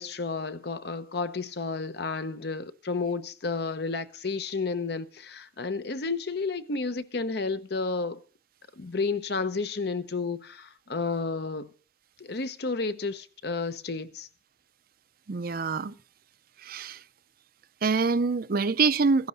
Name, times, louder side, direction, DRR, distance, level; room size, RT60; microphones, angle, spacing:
voice 1, 0.0-8.2 8.8-11.7 12.2-14.3, left 4 dB, 65° left, 0.8 m, -31 dB
voice 2, 15.3-15.9 16.6-17.0 17.8-19.3, right 4 dB, 55° right, 0.5 m, -25 dB
15.5 x 10.5 x 4.0 m
head